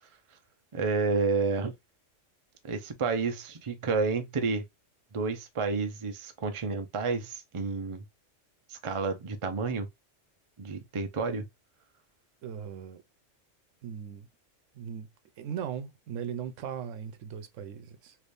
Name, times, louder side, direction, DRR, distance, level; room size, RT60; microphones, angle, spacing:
voice 1, 0.7-1.7 2.6-4.6 5.1-8.0 8.7-9.9 10.6-11.5, right 4 dB, 35° right, 0.5 m, -30 dB
voice 2, 12.4-13.0 13.8-14.3 14.7-15.1 15.4-18.2, right 8 dB, 85° right, 1.0 m, -38 dB
3.4 x 3.0 x 2.6 m
omnidirectional pair, 1.3 m